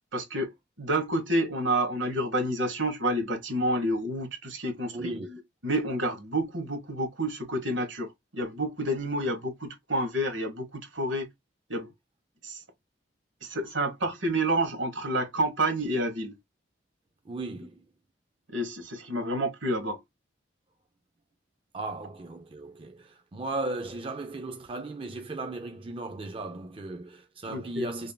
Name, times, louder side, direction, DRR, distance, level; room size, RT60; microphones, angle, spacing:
voice 1, 0.1-0.5 0.8-11.3 11.7-11.9 12.4-12.6 13.4-16.4 18.5-20.0 27.5-27.9, right 1 dB, 75° right, 1.2 m, -29 dB
voice 2, 4.9-5.3 17.3-17.7 21.7-28.1, right 2 dB, 25° right, 0.4 m, -36 dB
5.2 x 2.6 x 2.3 m
head